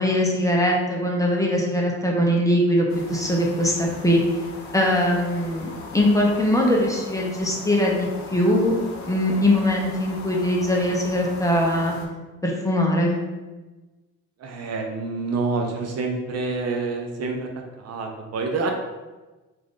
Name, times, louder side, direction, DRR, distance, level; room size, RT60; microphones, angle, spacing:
voice 1, 0.0-4.2 4.7-8.8 9.1-11.9 12.4-13.2, left 1 dB, 10° left, -2 dB, 0.7 m, -21 dB
sound 1, 2.9-12.1, left 3 dB, 65° left, 0.7 m, -40 dB
voice 2, 14.4-17.5 17.8-18.7, right 3 dB, 55° right, 2 dB, 0.6 m, -27 dB
3.1 x 2.6 x 3.7 m, 1.2 s
cardioid pair, 90°, 30 cm